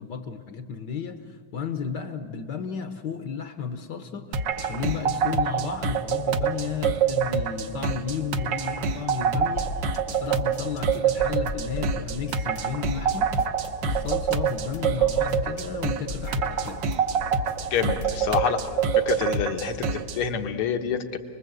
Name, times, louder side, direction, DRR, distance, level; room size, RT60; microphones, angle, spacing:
voice 1, 0.0-16.9, left 7 dB, 60° left, 9 dB, 1.4 m, -33 dB
sound 1, 4.3-20.2, right 6 dB, 60° right, 1.6 m, -26 dB
sound 2, 9.6-18.3, left 3 dB, 40° left, 1.1 m, -37 dB
voice 2, 17.7-18.6 19.0-21.2, left 7 dB, 80° left, 6 dB, 2.2 m, -27 dB
28.0 x 21.0 x 8.0 m, 2.2 s
omnidirectional pair, 2.4 m